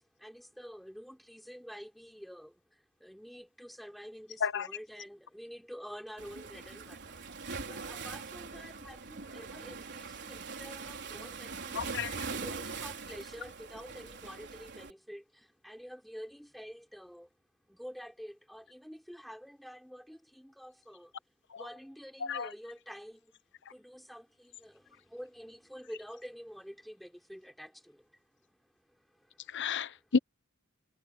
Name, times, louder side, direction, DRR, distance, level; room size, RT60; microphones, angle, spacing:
voice 1, 0.2-2.5 3.0-7.1 7.7-11.8 12.2-15.2 15.6-17.3 17.7-21.1 21.6-23.2 23.7-24.7 25.1-27.7, equal, ahead, 5.5 m, -48 dB
Waves surf, 6.2-14.9, right 4 dB, 55° right, 4.2 m, -42 dB
voice 2, 11.7-12.1 22.3-22.5 29.5-30.2, left 5 dB, 60° left, 1.0 m, -31 dB
head